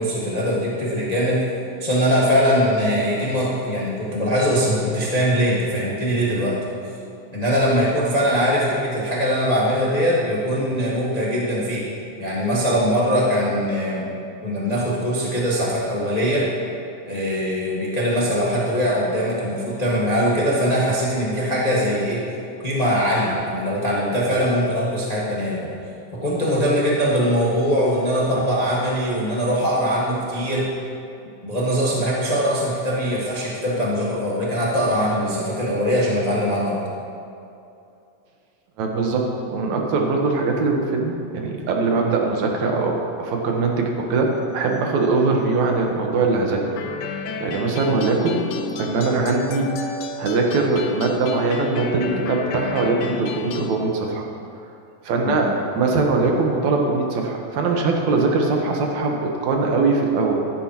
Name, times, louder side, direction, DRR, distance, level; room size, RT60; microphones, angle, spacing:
voice 1, 0.0-1.4 1.8-6.6 7.3-11.8 12.2-14.1 14.4-16.5 17.1-22.2 22.6-25.7 26.1-30.7 31.4-36.8 55.2-55.5, equal, 35° left, -6 dB, 0.6 m, -21 dB
voice 2, 38.8-46.6 47.1-48.5 48.8-54.2 55.0-60.4, right 3 dB, 65° right, 1 dB, 2.4 m, -22 dB
sound 1, 46.8-53.8, left 5 dB, 80° left, 2.2 m, -31 dB
15.5 x 12.5 x 3.0 m, 2.6 s
omnidirectional pair, 3.9 m